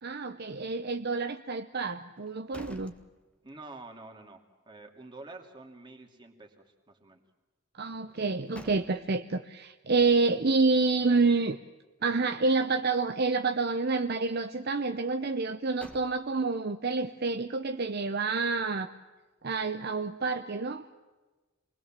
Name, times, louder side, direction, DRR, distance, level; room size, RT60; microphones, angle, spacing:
voice 1, 0.0-2.9 7.7-11.6 12.0-18.9 19.4-20.9, right 3 dB, 50° right, 8 dB, 0.8 m, -28 dB
sound 1, 2.2-3.8 4.2-4.3 8.1-9.3 15.4-16.6, equal, 5° left, 1.4 m, -51 dB
voice 2, 3.4-7.2, right 2 dB, 20° right, 3 dB, 2.8 m, -48 dB
27.0 x 21.0 x 7.5 m, 1.2 s
head